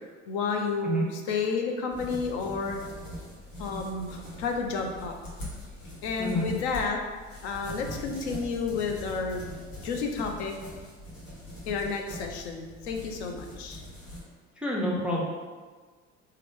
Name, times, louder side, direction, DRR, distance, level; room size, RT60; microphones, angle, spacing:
voice 1, 0.3-2.8 3.6-5.2 6.0-7.0 7.4-10.6 11.7-13.8, left 4 dB, 60° left, 3 dB, 0.6 m, -31 dB
sound 1, 1.9-14.2, left 1 dB, 75° left, 1.2 m, -42 dB
voice 2, 14.6-15.2, left 1 dB, 5° right, -4 dB, 0.4 m, -27 dB
3.5 x 2.2 x 3.4 m, 1.5 s
figure-of-eight pair, 70°, 38 cm